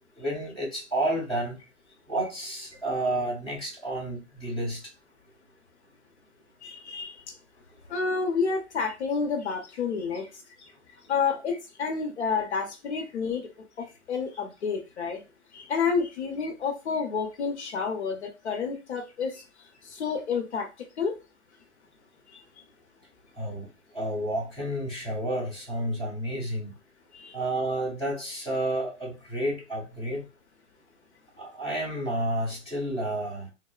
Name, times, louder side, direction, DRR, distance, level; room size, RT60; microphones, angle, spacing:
voice 1, 0.2-1.6 2.1-4.8 23.4-23.7 23.9-26.7 27.3-30.2 31.4-33.5, right 1 dB, ahead, 1.1 m, -30 dB
voice 2, 6.6-7.1 7.9-10.3 11.1-13.5 14.1-15.2 15.5-19.4 19.8-20.7 21.0-21.1 22.3-22.4 27.1-27.4, left 5 dB, 60° left, 0.7 m, -29 dB
3.0 x 2.0 x 2.3 m
hypercardioid pair, 175°, 38 cm